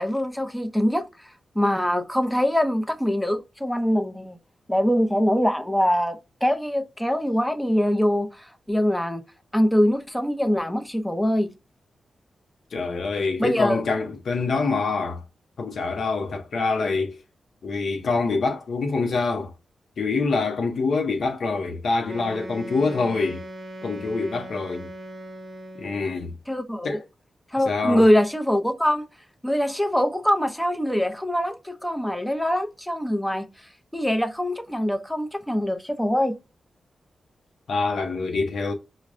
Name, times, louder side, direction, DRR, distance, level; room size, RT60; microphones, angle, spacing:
voice 1, 0.0-4.4 4.7-9.2 9.5-11.5 13.4-13.8 26.5-27.0 27.5-29.1 29.4-33.5 33.9-36.4, equal, 5° left, 0.6 m, -23 dB
voice 2, 12.7-15.2 15.6-17.2 17.6-19.5 20.0-23.4 23.8-24.9 25.8-26.3 26.8-27.0 27.7-28.0 37.7-38.7, left 4 dB, 70° left, 0.6 m, -25 dB
Wind instrument woodwind instrument, 22.0-26.2, right 1 dB, 35° right, 0.9 m, -39 dB
4.7 x 2.1 x 2.5 m
cardioid pair, 90°, 0 cm